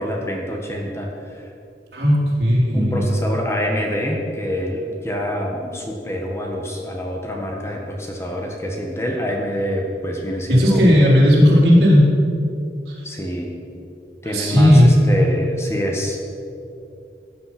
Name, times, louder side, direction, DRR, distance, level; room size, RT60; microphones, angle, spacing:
voice 1, 0.0-1.5 2.7-10.9 13.0-13.5 14.2-16.2, equal, 15° left, 0 dB, 1.5 m, -26 dB
voice 2, 1.9-3.0 10.5-12.1 14.3-14.9, equal, 65° right, -5 dB, 4.1 m, -14 dB
16.5 x 9.0 x 6.0 m, 2.6 s
head